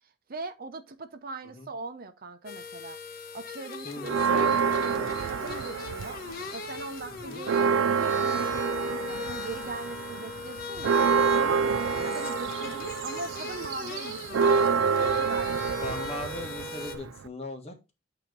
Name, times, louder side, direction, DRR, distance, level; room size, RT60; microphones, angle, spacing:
voice 1, 0.3-6.2 6.5-16.0, right 3 dB, 50° right, 0.8 m, -41 dB
sound 1, 2.5-17.0, left 4 dB, 50° left, 1.1 m, -39 dB
voice 2, 3.8-4.6 4.9-5.1 7.1-7.4 11.9-12.1 15.8-17.9, left 2 dB, 35° left, 1.5 m, -40 dB
Church bell, 4.0-6.4 6.8-6.9 7.2-17.3, right 6 dB, 80° right, 0.4 m, -27 dB
8.6 x 3.0 x 5.3 m
head